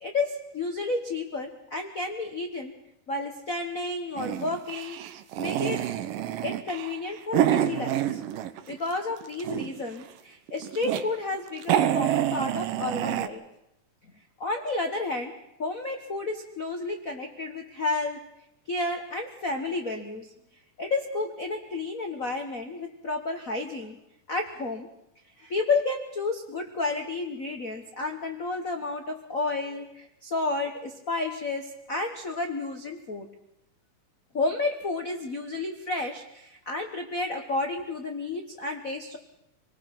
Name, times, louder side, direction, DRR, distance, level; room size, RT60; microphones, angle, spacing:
voice 1, 0.0-2.7 3.1-5.0 5.4-5.8 6.4-8.2 8.7-13.4 14.4-15.3 15.6-18.2 18.7-20.3 20.8-24.0 24.3-24.9 25.4-33.3 34.3-39.2, left 3 dB, 85° left, 5 dB, 0.7 m, -31 dB
sound 1, 4.2-8.8 9.1-9.9 10.5-11.0 11.3-11.4 11.6-13.3, right 11 dB, 90° right, 2.6 m, -27 dB
26.0 x 19.0 x 6.0 m, 0.85 s
omnidirectional pair, 3.8 m